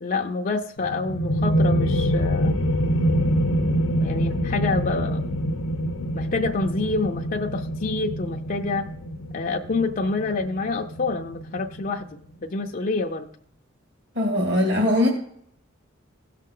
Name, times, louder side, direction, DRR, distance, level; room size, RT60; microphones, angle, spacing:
voice 1, 0.0-2.6 4.0-5.2 6.1-8.9 9.3-13.3, left 3 dB, 40° left, 2 dB, 0.6 m, -27 dB
sound 1, 0.8-12.2, equal, 80° left, 0.8 m, -25 dB
voice 2, 14.2-15.1, left 1 dB, 55° right, 0 dB, 2.1 m, -20 dB
17.0 x 6.5 x 3.8 m, 0.64 s
head